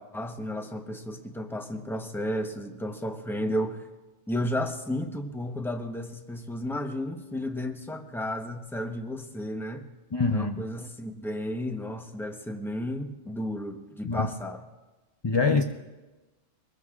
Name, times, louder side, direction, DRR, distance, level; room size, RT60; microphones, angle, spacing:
voice 1, 0.0-3.8 4.3-9.9 10.3-14.6, left 1 dB, ahead, 5 dB, 0.8 m, -33 dB
voice 2, 10.1-10.6 14.0-14.3 15.2-15.6, left 4 dB, 30° left, 4 dB, 0.5 m, -24 dB
24.0 x 21.0 x 2.4 m, 1.2 s
omnidirectional pair, 1.3 m